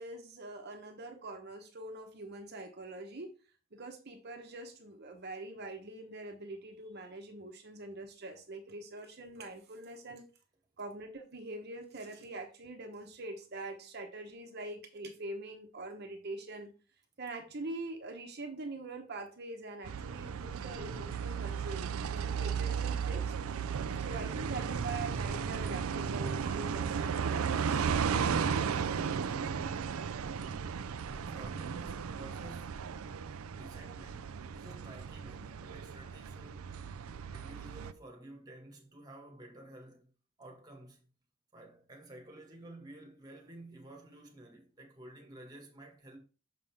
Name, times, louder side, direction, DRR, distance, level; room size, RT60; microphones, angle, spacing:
voice 1, 0.0-3.3 3.7-10.2 10.8-16.7 17.2-23.3 24.0-27.9, right 2 dB, 50° right, 1.0 m, -44 dB
sound 1, 19.8-37.9, right 6 dB, 85° right, 0.4 m, -35 dB
voice 2, 31.1-33.0 33.6-36.7 37.3-40.1 40.4-41.1 41.5-46.2, right 1 dB, 20° right, 1.7 m, -52 dB
6.6 x 5.5 x 3.5 m
head